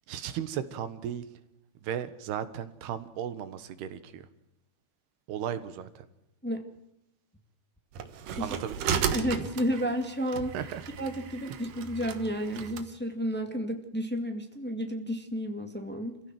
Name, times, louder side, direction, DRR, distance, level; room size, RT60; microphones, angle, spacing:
voice 1, 0.1-1.3 1.8-4.3 5.3-6.1 8.4-9.0 10.5-10.8 11.5-11.6, right 9 dB, 85° right, 12 dB, 3.4 m, -36 dB
sound 1, 7.9-12.9, right 7 dB, 65° right, 2.7 m, -35 dB
voice 2, 8.9-10.5 11.0-16.2, equal, 5° left, 4 dB, 1.0 m, -32 dB
27.5 x 16.0 x 7.8 m, 0.86 s
omnidirectional pair, 4.5 m